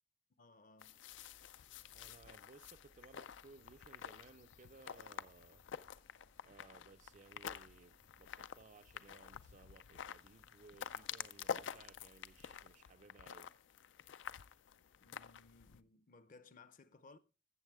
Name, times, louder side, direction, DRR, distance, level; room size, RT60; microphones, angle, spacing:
voice 1, 0.4-1.0 15.0-17.2, left 3 dB, 45° left, 0.6 m, -61 dB
sound 1, 0.8-15.8, left 8 dB, 90° left, 0.4 m, -49 dB
sound 2, 1.1-12.7, left 1 dB, 75° left, 2.1 m, -70 dB
voice 2, 1.9-5.6 6.4-13.5, right 3 dB, 40° right, 0.4 m, -61 dB
13.5 x 7.4 x 3.5 m
head